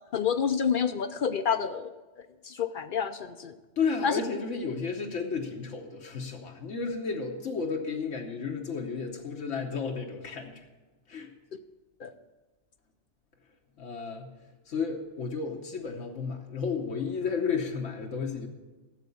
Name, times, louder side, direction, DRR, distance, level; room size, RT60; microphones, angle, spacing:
voice 1, 0.1-1.9 2.4-3.5 4.0-4.2 12.0-12.1, left 7 dB, 60° left, 10 dB, 0.6 m, -28 dB
voice 2, 3.8-10.5 11.1-11.3 13.8-14.3 14.7-18.5, left 5 dB, 85° left, 1 dB, 1.4 m, -32 dB
12.5 x 7.4 x 6.8 m, 1.2 s
omnidirectional pair, 1.2 m